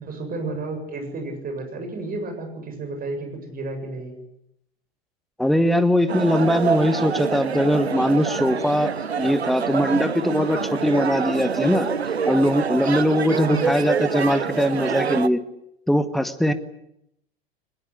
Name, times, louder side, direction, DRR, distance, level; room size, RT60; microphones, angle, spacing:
voice 1, 0.0-4.2 13.3-13.7, right 3 dB, 30° right, 6 dB, 7.6 m, -31 dB
voice 2, 5.4-8.9 9.2-11.9 12.3-15.4 15.9-16.5, equal, ahead, 11 dB, 1.5 m, -21 dB
sound 1, 6.1-15.3, right 6 dB, 85° right, 0.9 m, -26 dB
22.5 x 20.0 x 9.7 m, 0.79 s
figure-of-eight pair, 80°, 31 cm